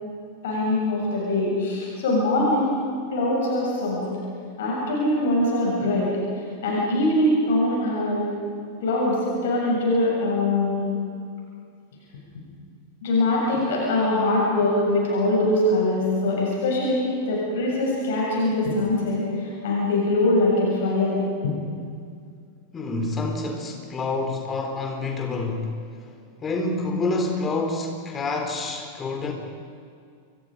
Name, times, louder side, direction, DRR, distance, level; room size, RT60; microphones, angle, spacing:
voice 1, 0.4-2.7 3.1-4.1 4.6-8.3 8.8-10.9 13.0-21.5, left 1 dB, 55° left, -4 dB, 7.4 m, -23 dB
voice 2, 22.7-25.7 26.0-26.1 26.4-29.3, left 3 dB, 20° left, 3 dB, 4.1 m, -27 dB
30.0 x 24.5 x 5.2 m, 2.2 s
figure-of-eight pair, 90°, 0 cm